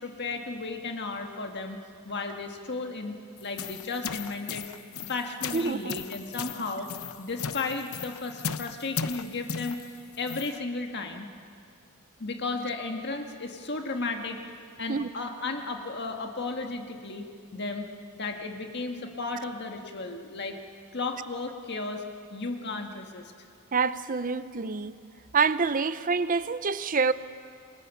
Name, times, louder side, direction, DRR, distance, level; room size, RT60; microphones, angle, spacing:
voice 1, 0.0-3.2 3.4-4.7 5.1-6.9 7.2-9.8 10.2-11.3 12.2-14.4 14.8-17.9 18.1-20.6 20.9-22.0 22.3-23.3, left 3 dB, 50° left, 4 dB, 1.8 m, -34 dB
sound 1, 3.4-10.6, left 6 dB, 70° left, 0.8 m, -37 dB
voice 2, 5.5-5.9 14.9-15.1 23.7-25.0 25.3-27.1, right 5 dB, 40° right, 14 dB, 0.7 m, -26 dB
29.0 x 22.5 x 7.2 m, 2.2 s
head